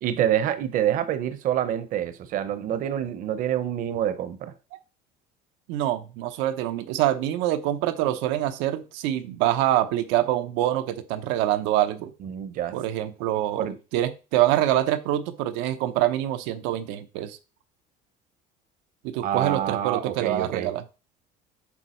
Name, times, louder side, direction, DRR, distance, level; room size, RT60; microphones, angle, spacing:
voice 1, 0.0-4.5 12.2-12.7 13.6-13.8 19.2-20.7, right 10 dB, 45° right, 0.8 m, -27 dB
voice 2, 5.7-12.1 12.7-13.7 13.9-17.4 19.0-20.8, right 13 dB, 85° right, 0.8 m, -25 dB
7.2 x 4.5 x 4.3 m
cardioid pair, 155°, 19 cm